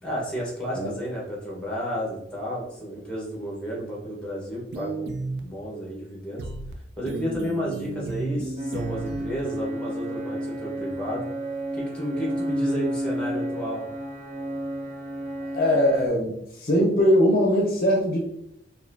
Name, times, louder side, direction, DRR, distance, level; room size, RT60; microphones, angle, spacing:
voice 1, 0.0-5.1 5.4-6.4 7.0-11.3 11.7-13.8, equal, 5° left, -4 dB, 1.2 m, -32 dB
sound 1, 4.7-5.4 6.4-6.7 7.1-9.4, right 3 dB, 65° right, 0.4 m, -33 dB
sound 2, 8.6-16.1, equal, 40° right, 0.8 m, -31 dB
voice 2, 15.5-16.3 16.6-18.2, equal, 50° left, 0 dB, 0.6 m, -20 dB
4.0 x 2.6 x 2.7 m, 0.77 s
head